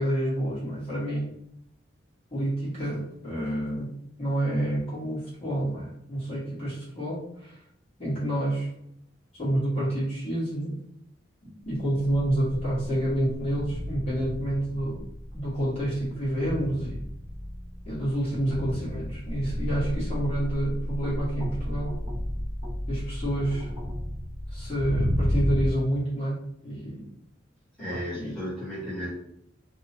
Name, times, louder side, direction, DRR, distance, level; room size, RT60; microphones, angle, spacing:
voice 1, 0.0-1.3 2.3-7.6 8.0-8.7 9.3-10.7 11.6-15.0 15.3-17.0 17.8-22.0 22.9-23.7 24.5-27.1 27.9-28.3, right 1 dB, 30° left, -9 dB, 1.4 m, -29 dB
sound 1, 11.7-25.7, equal, 25° right, 0.7 m, -32 dB
voice 2, 27.8-29.1, equal, 5° left, -11 dB, 1.2 m, -34 dB
2.8 x 2.3 x 2.8 m, 0.74 s
head